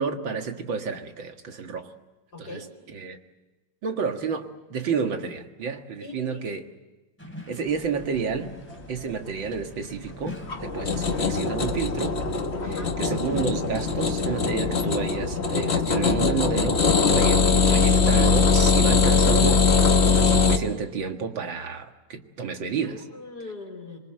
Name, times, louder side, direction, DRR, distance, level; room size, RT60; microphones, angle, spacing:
voice 1, 0.0-1.9 2.4-2.6 2.9-3.2 3.8-6.7 7.5-8.5 8.9-12.2 12.7-19.7 20.1-23.0, right 5 dB, 85° right, 5 dB, 2.6 m, -30 dB
voice 2, 2.3-2.7 6.0-6.5 12.6-13.0 22.8-24.0, left 3 dB, 55° left, -1 dB, 4.1 m, -41 dB
sound 1, 7.2-14.9, right 1 dB, 5° left, 3.4 m, -43 dB
sound 2, 10.3-20.6, left 4 dB, 35° left, 1.6 m, -21 dB
26.5 x 23.0 x 7.8 m, 1.1 s
omnidirectional pair, 2.0 m